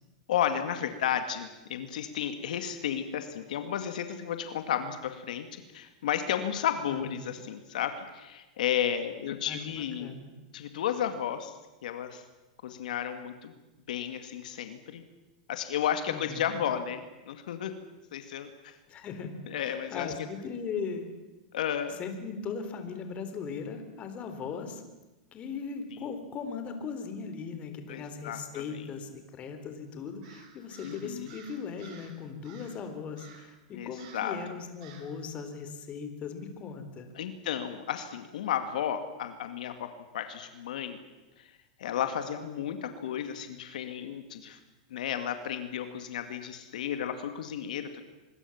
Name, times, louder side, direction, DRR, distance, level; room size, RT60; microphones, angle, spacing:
voice 1, 0.3-10.2 10.5-11.5 11.8-12.2 12.6-13.5 13.9-15.0 15.5-17.7 18.1-18.8 19.5-20.1 21.5-22.0 27.9-28.9 30.8-31.3 33.7-34.4 37.2-39.9 40.1-41.0 41.4-41.5 41.8-44.6 44.9-48.0, left 9 dB, 80° left, 8 dB, 2.3 m, -33 dB
voice 2, 6.9-7.3 9.5-10.3 16.1-16.7 18.9-21.1 21.9-24.8 25.3-37.1, left 5 dB, 30° left, 7 dB, 3.7 m, -39 dB
Crow, 30.2-32.2 32.4-32.8 33.2-33.5 34.0-34.3 34.8-35.1, right 6 dB, 60° right, 5.8 m, -53 dB
25.5 x 22.0 x 7.3 m, 1.1 s
supercardioid pair, 135°, 4 cm